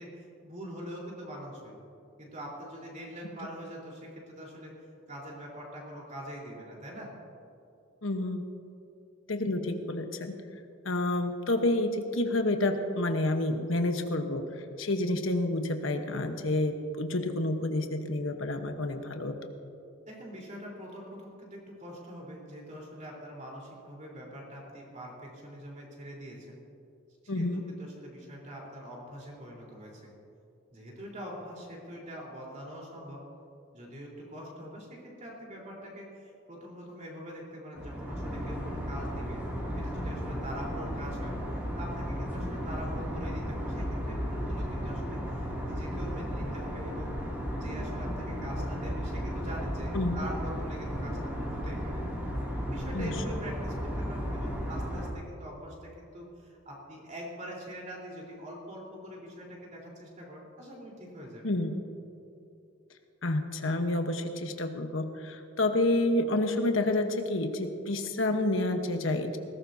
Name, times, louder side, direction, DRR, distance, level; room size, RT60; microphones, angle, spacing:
voice 1, 0.0-1.8 2.2-4.7 5.1-7.1 20.1-26.6 27.2-30.1 30.7-33.2 33.7-39.4 39.8-41.3 41.8-47.1 47.5-52.0 52.7-61.5, equal, 40° right, -3 dB, 4.0 m, -43 dB
voice 2, 8.0-8.5 9.3-10.3 10.8-14.5 14.8-19.4 27.3-27.6 49.9-50.2 52.9-53.2 61.4-61.8 63.2-69.4, left 2 dB, 80° left, 6 dB, 1.1 m, -29 dB
sound 1, 37.8-55.1, equal, 10° right, 2.6 m, -34 dB
20.0 x 17.5 x 2.8 m, 2.7 s
head